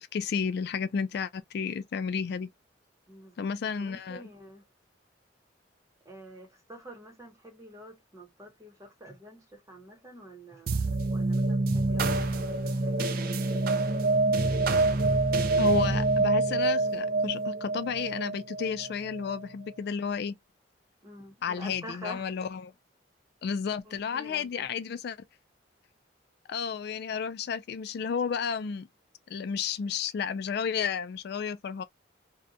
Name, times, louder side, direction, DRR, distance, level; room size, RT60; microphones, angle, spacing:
voice 1, 0.0-2.5 3.4-4.3 15.6-20.3 21.4-22.7 23.4-25.2 26.5-28.9 29.3-31.8, left 6 dB, 60° left, 0.3 m, -32 dB
voice 2, 3.1-4.6 6.0-13.7 21.0-22.3 23.9-24.7, equal, 15° right, 0.8 m, -48 dB
sound 1, 10.7-19.4, right 2 dB, 50° right, 0.4 m, -26 dB
2.6 x 2.2 x 2.4 m
head